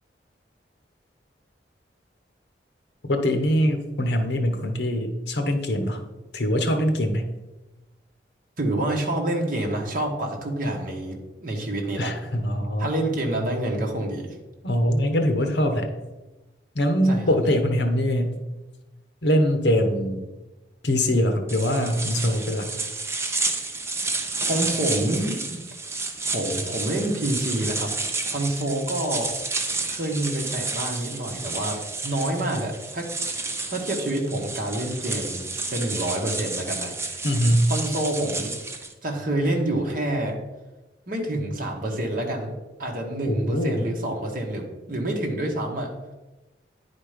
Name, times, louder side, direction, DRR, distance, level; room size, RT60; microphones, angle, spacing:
voice 1, 3.1-6.0 6.3-7.3 12.0-12.9 14.6-15.9 16.7-18.4 19.2-20.2 20.8-22.7 37.2-37.7 43.3-43.8, equal, 70° left, 6 dB, 1.0 m, -23 dB
voice 2, 8.6-12.1 12.8-14.3 17.0-17.4 24.4-25.6 26.3-27.9 28.3-29.3 29.9-35.4 35.7-37.0 37.7-38.5 39.0-40.4 41.1-42.5 42.8-45.9, right 1 dB, 50° right, 1 dB, 1.3 m, -27 dB
sound 1, 21.5-38.9, right 3 dB, 15° right, 0.7 m, -31 dB
9.6 x 4.4 x 5.0 m, 1.1 s
head